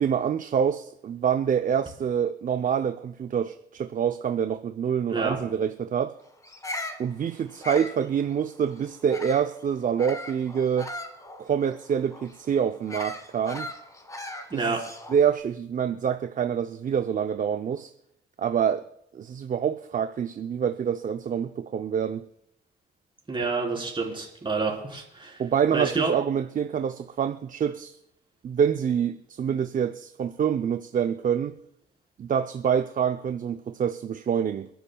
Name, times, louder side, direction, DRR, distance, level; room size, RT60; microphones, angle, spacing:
voice 1, 0.0-6.2 7.0-10.9 11.4-13.7 14.5-14.8 15.1-17.9 18.4-18.9 19.1-22.3 25.4-27.9 28.4-31.6 32.2-34.7, right 8 dB, 40° right, 0.6 m, -26 dB
Bird vocalization bird call bird song, 6.4-9.5 10.0-15.3, left 1 dB, 15° left, 1.7 m, -39 dB
voice 2, 23.3-25.4 25.7-26.1, right 4 dB, 25° right, 4.0 m, -28 dB
28.5 x 10.0 x 2.3 m
cardioid pair, 90°, 20 cm